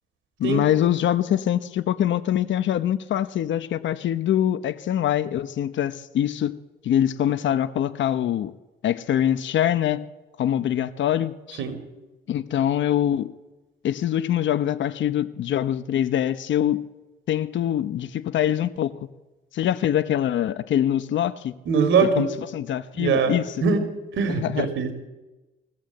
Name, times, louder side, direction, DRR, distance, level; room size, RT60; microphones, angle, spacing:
voice 1, 0.4-6.6 6.8-8.5 8.8-10.0 10.4-11.6 12.3-13.3 13.8-16.9 17.3-18.9 19.5-21.5 22.2-23.6 24.3-24.7, left 11 dB, 70° left, 12 dB, 1.0 m, -24 dB
voice 2, 21.7-22.3 22.9-23.3 23.6-23.8 24.1-24.9, right 5 dB, 75° right, 6 dB, 3.9 m, -21 dB
21.5 x 16.5 x 7.9 m, 1.1 s
cardioid pair, 90°, 20 cm